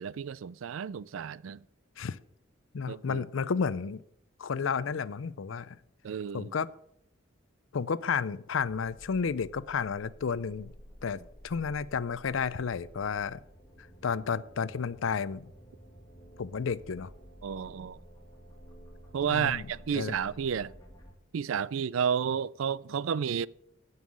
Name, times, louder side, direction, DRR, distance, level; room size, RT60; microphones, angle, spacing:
voice 1, 0.0-1.6 2.9-3.2 6.0-6.5 17.4-18.0 19.1-20.7 21.3-23.5, right 7 dB, 85° right, 0.4 m, -31 dB
voice 2, 2.7-4.0 4.4-5.8 6.3-6.7 7.7-10.7 11.0-13.4 14.0-15.5 16.4-17.1 19.3-20.2, left 6 dB, 80° left, 0.5 m, -32 dB
sound 1, 8.6-21.1, equal, 20° left, 2.0 m, -52 dB
15.5 x 5.6 x 6.3 m
head